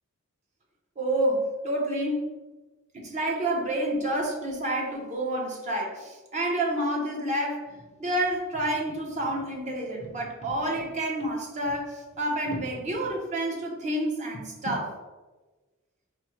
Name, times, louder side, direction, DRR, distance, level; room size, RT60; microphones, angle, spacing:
voice 1, 1.0-2.3 2.9-7.7 8.0-15.0, right 1 dB, 35° right, -1 dB, 0.8 m, -29 dB
sound 1, 7.7-8.1 8.5-13.1 13.6-13.7 14.3-14.9, equal, 30° left, 0.6 m, -44 dB
4.2 x 2.1 x 4.4 m, 1.2 s
head